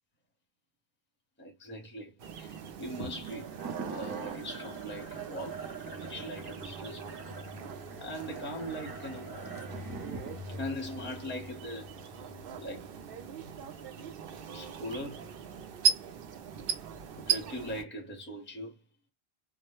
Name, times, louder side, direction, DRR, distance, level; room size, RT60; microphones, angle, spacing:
voice 1, 1.4-3.5 3.8-7.3 8.0-9.5 10.6-12.3 12.6-12.9 14.5-15.3 17.2-18.8, equal, 10° left, 0.7 m, -41 dB
sound 1, 2.2-17.8, right 7 dB, 65° right, 0.7 m, -38 dB
sound 2, 3.1-13.6, right 2 dB, 25° right, 0.5 m, -44 dB
2.2 x 2.1 x 2.9 m
omnidirectional pair, 1.1 m